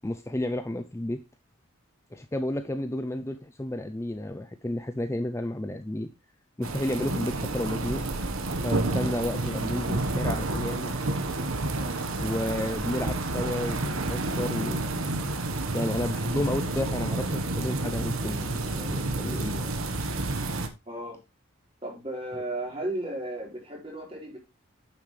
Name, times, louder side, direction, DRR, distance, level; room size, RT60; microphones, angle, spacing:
voice 1, 0.0-1.2 2.1-6.1 6.6-8.0 8.6-10.9 12.2-14.9 15.7-19.7, left 1 dB, 15° left, 0.4 m, -32 dB
sound 1, 6.6-20.7, right 2 dB, 85° right, 1.3 m, -30 dB
voice 2, 20.9-21.2 21.8-24.4, right 1 dB, 25° right, 4.3 m, -34 dB
9.5 x 7.1 x 3.2 m
head